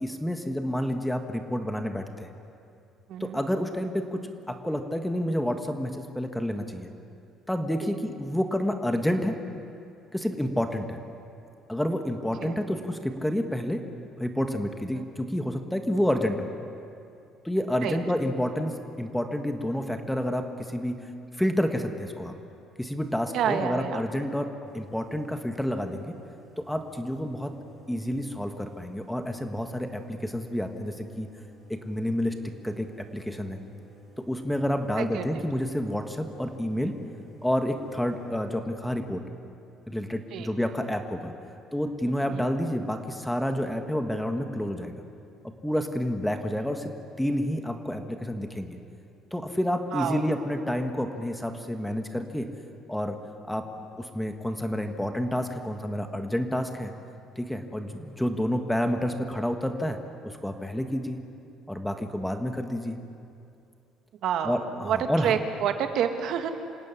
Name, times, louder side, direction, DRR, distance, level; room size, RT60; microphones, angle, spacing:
voice 1, 0.0-2.3 3.2-4.2 4.5-6.9 7.5-9.4 10.1-11.0 11.7-13.9 14.2-16.5 17.5-21.1 21.4-22.3 22.8-26.1 26.6-27.6 27.9-31.3 31.7-32.4 32.6-33.6 34.2-37.0 37.4-39.2 39.9-41.3 41.7-44.9 45.4-48.8 49.3-52.5 52.9-53.2 53.4-53.7 53.9-56.9 57.4-60.0 60.2-61.2 61.7-63.0 64.4-65.3, equal, 5° left, 6 dB, 1.6 m, -29 dB
voice 2, 3.1-3.4 7.8-8.0 12.4-12.6 14.9-15.1 17.8-18.0 23.3-24.0 35.0-35.3 40.3-40.5 42.3-42.5 49.9-50.2 64.2-66.5, right 8 dB, 60° right, 7 dB, 1.7 m, -29 dB
sound 1, 24.6-38.6, left 2 dB, 20° left, 4.9 m, -54 dB
27.0 x 16.5 x 9.8 m, 2.6 s
cardioid pair, 135°, 0 cm